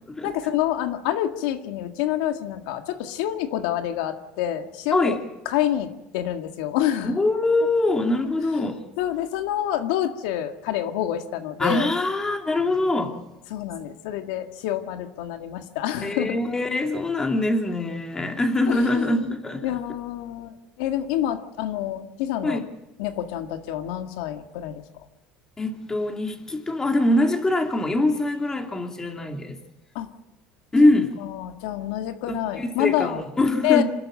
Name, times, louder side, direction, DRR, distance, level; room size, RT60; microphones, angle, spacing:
voice 1, 0.0-5.2 5.5-7.2 9.0-11.9 13.5-16.4 18.7-19.3 19.6-20.5 20.8-22.6 23.0-24.8 30.0-30.1 31.2-33.2 33.6-33.8, left 12 dB, 80° left, 7 dB, 1.9 m, -27 dB
voice 2, 7.0-8.8 11.6-13.2 16.0-19.7 22.4-22.6 25.6-29.6 30.7-31.1 32.3-33.8, left 2 dB, 15° left, 4 dB, 2.8 m, -23 dB
27.0 x 13.0 x 7.8 m, 0.93 s
supercardioid pair, 125°, 4 cm